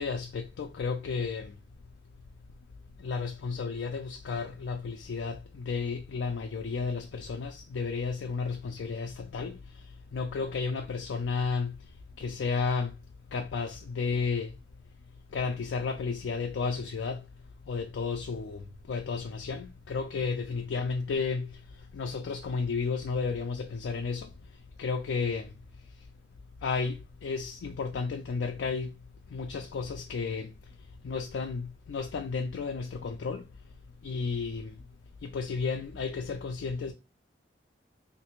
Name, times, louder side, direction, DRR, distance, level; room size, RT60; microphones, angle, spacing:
voice 1, 0.0-1.6 3.0-11.9 12.2-13.0 13.3-14.6 15.3-17.3 17.7-25.5 26.0-26.1 26.6-28.9 29.3-30.8 31.0-33.5 34.0-34.8 35.2-36.9, left 5 dB, 85° left, 0.4 m, -33 dB
3.2 x 2.6 x 3.0 m
head